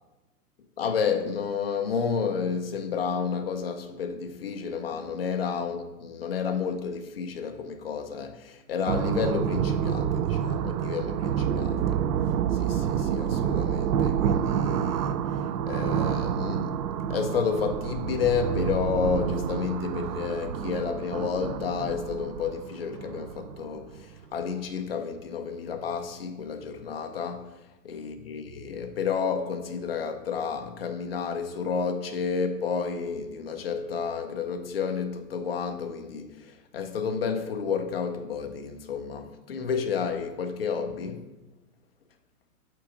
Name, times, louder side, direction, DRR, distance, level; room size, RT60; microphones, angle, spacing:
voice 1, 0.8-12.0 12.5-15.2 15.7-16.8 17.1-27.5 27.8-41.2, left 6 dB, 40° left, 0.5 m, -31 dB
sound 1, 8.9-24.2, right 8 dB, 85° right, 0.6 m, -28 dB
7.5 x 3.8 x 4.9 m
hypercardioid pair, 180°, 46 cm